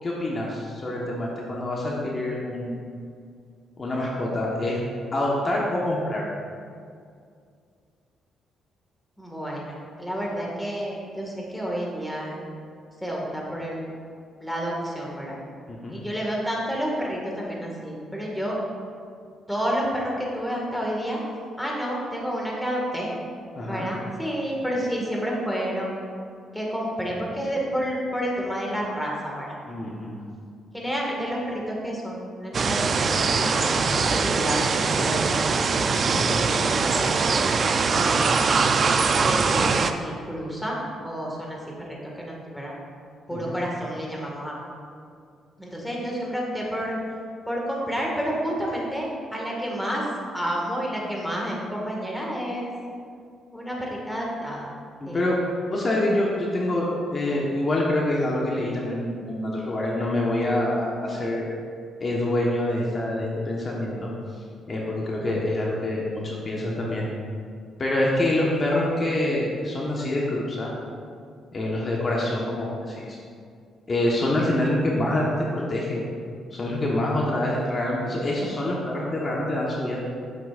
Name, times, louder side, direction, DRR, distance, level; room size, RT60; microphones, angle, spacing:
voice 1, 0.0-2.8 3.8-4.8 5.1-6.3 15.7-15.9 23.5-23.9 29.7-30.2 35.9-36.2 43.3-43.6 55.0-55.4 55.7-61.4 62.0-64.1 64.7-67.0 67.8-70.7 71.5-73.2 73.9-75.2 75.5-76.0 76.5-80.0, left 1 dB, 35° left, -4 dB, 1.2 m, -26 dB
voice 2, 9.2-12.4 13.0-13.9 14.4-15.3 15.9-18.6 19.5-21.2 21.6-23.1 23.7-25.9 26.5-29.6 30.7-34.6 34.9-37.2 37.8-38.5 39.2-40.8 41.0-41.6 41.9-42.7 43.3-44.5 45.6-47.0 47.5-50.0 50.3-52.7 53.5-54.7 55.0-55.3, equal, 5° left, -3 dB, 1.8 m, -30 dB
sound 1, 32.5-39.9, right 4 dB, 45° right, 0.4 m, -22 dB
10.0 x 7.7 x 2.5 m, 2.3 s
cardioid pair, 90°, 0 cm